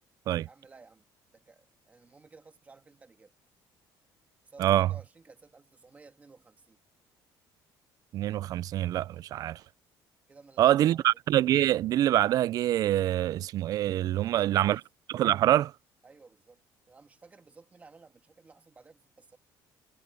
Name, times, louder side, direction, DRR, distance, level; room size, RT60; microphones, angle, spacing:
voice 1, 0.5-1.1 1.3-3.3 4.4-6.8 10.3-11.1 14.2-14.8 16.0-16.6 16.9-19.4, right 4 dB, 20° right, 2.1 m, -55 dB
voice 2, 8.1-9.6 10.6-14.8 15.1-15.7, right 13 dB, 50° right, 0.4 m, -25 dB
cardioid pair, 155°, 8 cm